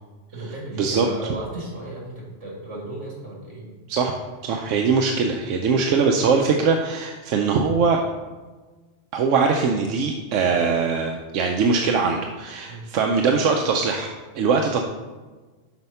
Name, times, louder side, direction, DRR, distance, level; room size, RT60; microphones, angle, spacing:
voice 1, 0.3-3.7 12.7-12.9, right 2 dB, 70° right, -3 dB, 2.3 m, -35 dB
voice 2, 3.9-8.0 9.1-14.8, right 5 dB, 90° right, 3 dB, 1.0 m, -21 dB
6.2 x 4.4 x 5.4 m, 1.3 s
omnidirectional pair, 1.3 m